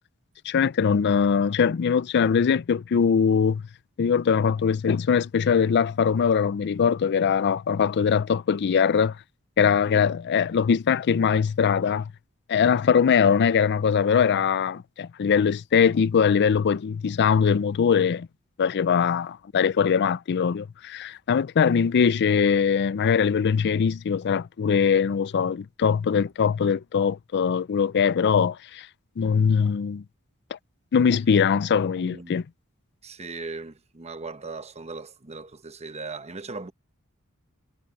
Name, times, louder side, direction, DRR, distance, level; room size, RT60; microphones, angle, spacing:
voice 1, 0.5-3.6 4.0-9.2 9.6-12.1 12.5-18.3 18.6-28.9 29.2-30.0 30.5-30.6 30.9-32.4, left 6 dB, 50° left, 0.4 m, -22 dB
voice 2, 32.0-32.4 33.0-36.7, right 3 dB, 30° right, 1.0 m, -38 dB
head